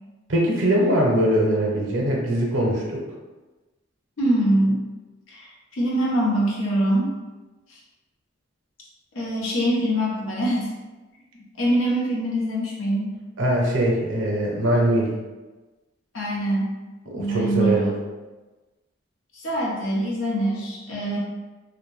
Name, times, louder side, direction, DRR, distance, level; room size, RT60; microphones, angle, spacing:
voice 1, 0.3-3.0 13.4-15.1 17.1-17.9, right 1 dB, 80° right, -2 dB, 0.5 m, -21 dB
voice 2, 4.2-4.8 5.3-7.2 7.7-7.8 9.1-10.7 11.6-13.2 16.1-16.8 17.0-18.0 19.3-21.2, right 1 dB, 90° left, -4 dB, 0.6 m, -24 dB
2.6 x 2.0 x 3.0 m, 1.2 s
head